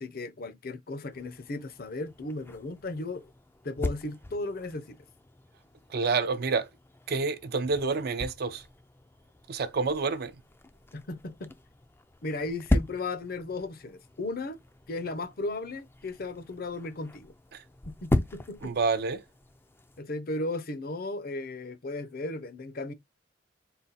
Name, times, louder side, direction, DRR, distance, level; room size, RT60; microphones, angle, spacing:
voice 1, 0.0-3.3 3.6-5.0 10.9-11.5 12.2-14.6 14.9-17.3 17.9-18.7 20.0-22.9, left 2 dB, 55° left, 0.6 m, -35 dB
sound 1, 1.1-20.0, left 1 dB, 15° left, 0.4 m, -37 dB
voice 2, 5.9-6.7 7.1-8.6 9.5-10.3 17.5-17.6 18.6-19.2, right 4 dB, 55° right, 0.5 m, -28 dB
4.0 x 2.2 x 4.0 m
head